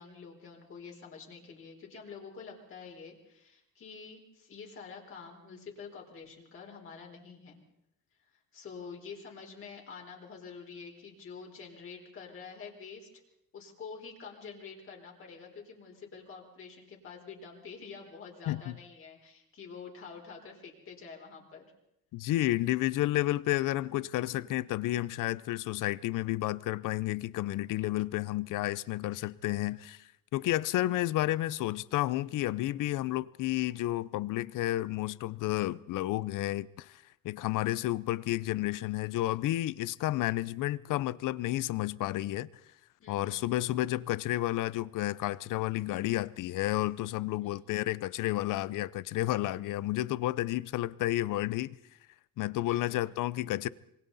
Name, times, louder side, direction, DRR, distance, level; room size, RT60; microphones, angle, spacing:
voice 1, 0.0-7.6 8.2-13.2 13.5-21.6 43.0-43.5 47.4-47.8 52.7-53.1, left 5 dB, 40° left, 4.5 m, -47 dB
voice 2, 22.1-30.0 30.3-42.5 43.1-51.8 52.4-53.7, left 16 dB, 65° left, 0.7 m, -31 dB
26.5 x 24.0 x 4.2 m
cardioid pair, 175°, 35 cm